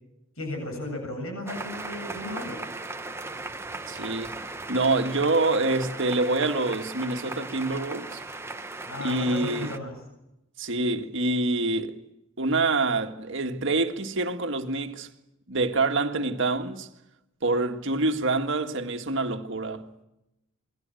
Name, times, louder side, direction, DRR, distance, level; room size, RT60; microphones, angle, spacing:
voice 1, 0.4-2.6 8.9-10.0, left 1 dB, 75° left, 7.7 m, -35 dB
sound 1, 1.5-9.8, right 2 dB, 10° right, 1.1 m, -37 dB
voice 2, 3.9-4.4 4.7-8.2 9.0-9.7 10.6-12.0 12.4-15.1 15.5-16.9 17.4-20.0, right 2 dB, 60° right, 1.8 m, -26 dB
27.5 x 22.5 x 9.1 m
head